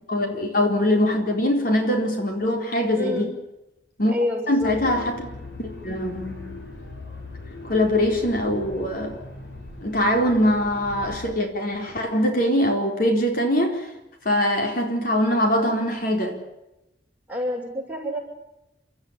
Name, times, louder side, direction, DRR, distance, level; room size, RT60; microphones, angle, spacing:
voice 1, 0.0-3.3 4.0-4.1 4.5-5.3 5.6-6.6 7.6-9.1 9.8-13.9 14.2-16.4, left 1 dB, 55° left, 3 dB, 4.2 m, -22 dB
voice 2, 3.0-3.4 4.1-4.7 17.3-18.2, left 1 dB, 10° right, -2 dB, 7.4 m, -28 dB
sound 1, 4.6-11.3, left 2 dB, 85° left, 6.8 m, -39 dB
30.0 x 13.5 x 10.0 m, 0.93 s
head